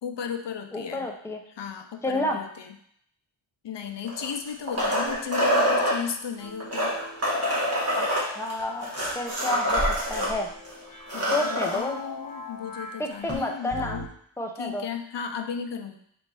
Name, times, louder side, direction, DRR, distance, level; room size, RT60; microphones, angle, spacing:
voice 1, 0.0-1.1 1.6-2.7 3.6-6.9 11.1-14.1 14.6-16.0, left 7 dB, 65° left, 6 dB, 0.6 m, -35 dB
voice 2, 0.7-1.4 2.0-2.4 8.0-10.5 11.2-12.0 13.0-14.0 14.4-14.8, left 2 dB, 5° left, 2 dB, 0.4 m, -30 dB
sound 1, 4.0-6.0 6.6-10.3 10.6-10.7 11.0-11.8 13.3-13.4, equal, 30° right, 1.3 m, -25 dB
sound 2, 6.4-14.1, left 2 dB, 45° left, 1.0 m, -41 dB
4.2 x 2.7 x 4.6 m, 0.68 s
wide cardioid pair, 125°, 47 cm